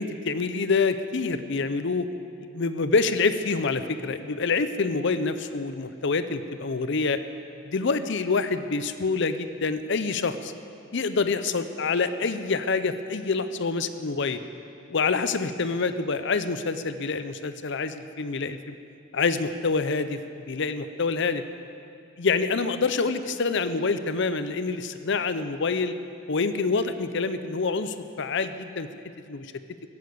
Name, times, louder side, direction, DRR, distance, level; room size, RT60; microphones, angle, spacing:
voice 1, 0.0-2.1 2.5-7.2 7.6-10.5 10.9-14.4 14.9-18.8 19.1-20.2 20.5-21.4 22.2-26.0 26.3-28.9 29.3-29.5, left 4 dB, 65° left, 11 dB, 0.7 m, -26 dB
16.5 x 10.0 x 7.9 m, 2.4 s
head